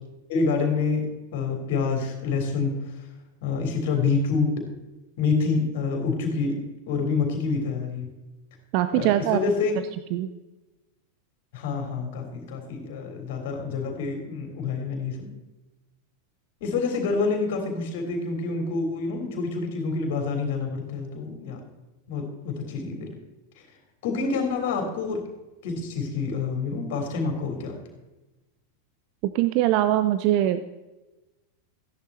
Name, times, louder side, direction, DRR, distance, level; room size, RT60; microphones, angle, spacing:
voice 1, 0.3-2.7 3.4-4.5 5.2-6.6 6.9-8.1 8.9-9.7 11.5-15.3 16.6-21.6 22.1-23.1 24.0-25.2 25.6-27.8, left 4 dB, 50° left, 4 dB, 3.4 m, -27 dB
voice 2, 8.7-9.4 10.1-10.3 29.3-30.6, right 13 dB, 45° right, 11 dB, 0.6 m, -22 dB
14.5 x 10.5 x 4.4 m, 1.1 s
figure-of-eight pair, 90°, 0 cm